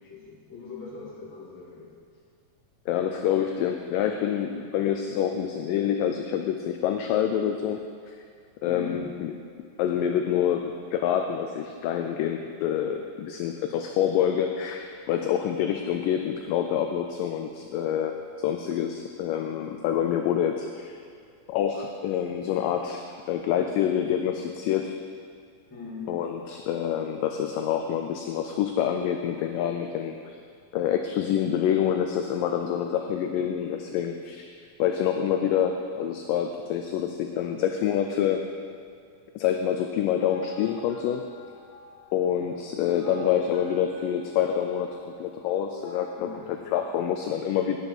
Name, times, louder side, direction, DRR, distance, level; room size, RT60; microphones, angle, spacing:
voice 1, 0.0-2.0 8.6-9.1 20.1-20.2 25.7-26.2 46.2-46.7, left 4 dB, 10° left, -8 dB, 1.2 m, -41 dB
voice 2, 2.9-8.2 8.6-9.3 9.8-18.1 18.4-21.0 21.5-24.9 26.1-30.4 30.7-34.5 34.8-38.4 39.4-41.3 42.1-46.3 46.7-47.8, left 9 dB, 85° left, 5 dB, 1.9 m, -27 dB
sound 1, 40.1-46.5, left 1 dB, 60° left, 1.4 m, -47 dB
9.6 x 7.2 x 6.0 m, 2.2 s
omnidirectional pair, 4.4 m